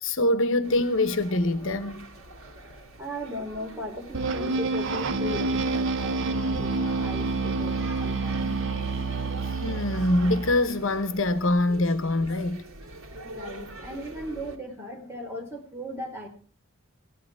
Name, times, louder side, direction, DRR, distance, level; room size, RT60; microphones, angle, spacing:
voice 1, 0.0-2.1 9.6-12.6, left 2 dB, 65° left, 1.2 m, -24 dB
sound 1, 0.6-14.6, right 2 dB, 80° right, 2.6 m, -45 dB
voice 2, 3.0-8.5 13.3-16.3, left 1 dB, 10° right, 3.9 m, -37 dB
sound 2, 4.1-10.7, right 3 dB, 60° right, 0.8 m, -28 dB
Wind instrument woodwind instrument, 6.0-9.7, left 3 dB, 45° left, 2.4 m, -42 dB
17.0 x 11.5 x 4.9 m
head